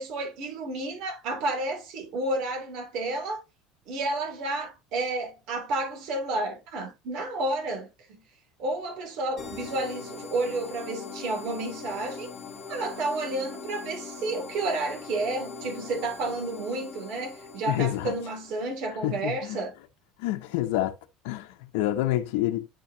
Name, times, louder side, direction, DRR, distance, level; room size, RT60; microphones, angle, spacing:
voice 1, 0.0-3.4 3.9-8.2 8.6-12.3 12.7-19.7, right 2 dB, 55° right, 2.7 m, -31 dB
sound 1, 9.4-18.7, left 5 dB, 30° left, 1.7 m, -41 dB
voice 2, 17.7-18.1 19.0-19.6 20.2-20.9 21.2-22.7, left 14 dB, 80° left, 0.8 m, -28 dB
9.4 x 4.6 x 2.7 m
cardioid pair, 155°, 0 cm